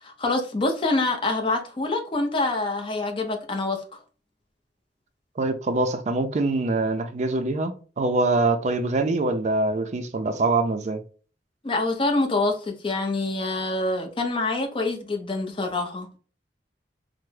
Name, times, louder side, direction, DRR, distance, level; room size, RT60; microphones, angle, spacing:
voice 1, 0.0-3.8 11.6-16.1, left 2 dB, 30° left, 0.5 m, -26 dB
voice 2, 5.4-11.0, right 2 dB, 40° right, 0.4 m, -24 dB
3.3 x 2.0 x 3.2 m
head